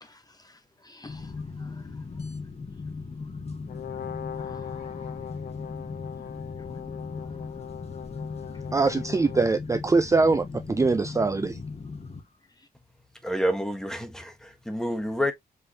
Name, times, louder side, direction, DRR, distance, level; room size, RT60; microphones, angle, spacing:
voice 1, 0.0-1.3 1.6-1.9 4.3-5.1 6.6-6.7, left 2 dB, 25° left, 0.7 m, -52 dB
sound 1, 1.1-12.2, left 4 dB, 40° left, 1.4 m, -38 dB
Brass instrument, 3.7-9.5, left 9 dB, 80° left, 0.7 m, -40 dB
voice 2, 8.7-11.6, right 3 dB, 20° right, 0.4 m, -23 dB
voice 3, 13.2-15.3, equal, 5° left, 1.3 m, -28 dB
4.9 x 3.6 x 2.8 m
cardioid pair, 95°, 16 cm